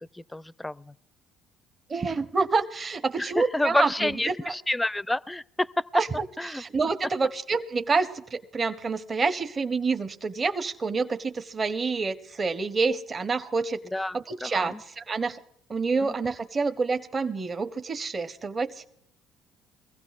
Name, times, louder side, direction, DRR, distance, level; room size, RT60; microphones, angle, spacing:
voice 1, 0.3-0.9 3.2-5.7 6.4-6.6 13.9-14.8 16.0-16.2, left 1 dB, 10° left, 0.4 m, -29 dB
voice 2, 1.9-4.5 5.9-13.8 14.1-15.4 15.7-18.9, right 4 dB, 35° right, 0.7 m, -28 dB
22.5 x 15.5 x 2.4 m
hypercardioid pair, 60°, 0 cm